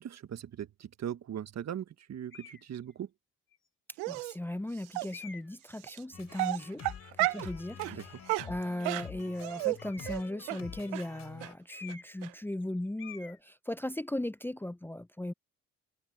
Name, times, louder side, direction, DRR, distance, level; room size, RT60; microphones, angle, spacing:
voice 1, 0.0-3.1 7.9-8.0, right 10 dB, 55° right, 1.4 m, -39 dB
sound 1, 2.3-2.7 3.5-3.6 5.1-5.6 9.8-10.4 11.7-12.3 12.5-12.7 13.0-13.4, left 6 dB, 35° left, 2.6 m, -48 dB
Dog, 4.0-4.3 4.9-5.1 5.9-6.0 6.3-7.5 7.8-8.0 8.3-9.8 10.1-10.2 10.5-10.6 10.9-11.0 11.4-11.5 11.9-12.0 12.2-12.3, right 22 dB, 85° right, 1.1 m, -32 dB
voice 2, 4.1-6.8 7.2-8.2 8.4-15.3, left 1 dB, 5° left, 0.7 m, -37 dB
sound 2, 6.1-11.5, left 8 dB, 55° left, 4.0 m, -48 dB
hypercardioid pair, 55°, 32 cm